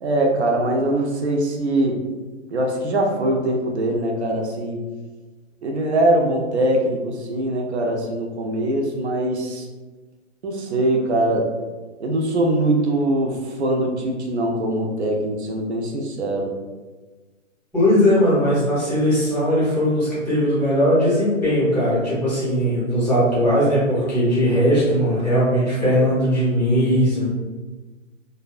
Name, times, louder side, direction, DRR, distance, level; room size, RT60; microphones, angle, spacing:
voice 1, 0.0-2.0 2.5-4.8 5.6-9.6 10.4-11.5 12.0-16.5, right 1 dB, 60° right, 1 dB, 0.5 m, -22 dB
voice 2, 17.7-27.3, equal, ahead, -11 dB, 0.6 m, -19 dB
2.7 x 2.1 x 2.4 m, 1.3 s
hypercardioid pair, 180°, 39 cm